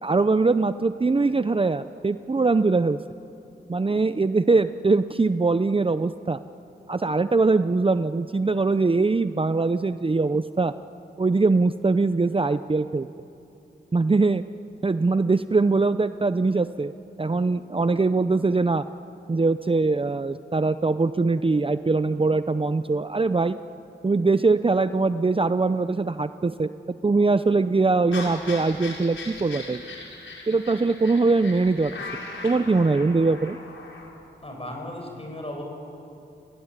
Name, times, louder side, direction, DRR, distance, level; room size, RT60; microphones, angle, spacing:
voice 1, 0.0-3.0 3.7-6.4 6.9-10.7 11.2-13.1 13.9-14.4 14.8-16.9 17.2-18.8 19.3-23.6 24.0-29.9 30.5-31.9 32.4-33.6, right 3 dB, 25° right, 12 dB, 0.7 m, -22 dB
sound 1, 28.1-34.1, left 3 dB, 80° left, 5.1 m, -39 dB
voice 2, 34.4-35.6, left 1 dB, 30° left, 2 dB, 7.7 m, -35 dB
29.5 x 18.0 x 9.8 m, 2.8 s
cardioid pair, 50°, 20 cm